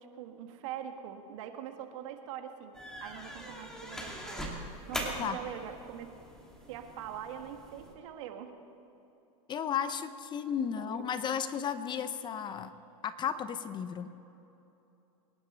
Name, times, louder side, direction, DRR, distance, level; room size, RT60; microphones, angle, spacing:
voice 1, 0.0-4.6 4.9-6.1 6.7-8.5 10.8-11.0, right 9 dB, 65° right, 6 dB, 1.8 m, -43 dB
sound 1, 2.7-7.9, equal, 5° left, 2.3 m, -42 dB
voice 2, 9.5-12.7 13.0-14.1, left 8 dB, 25° left, 12 dB, 0.7 m, -34 dB
24.5 x 11.0 x 4.4 m, 3.0 s
supercardioid pair, 125°, 18 cm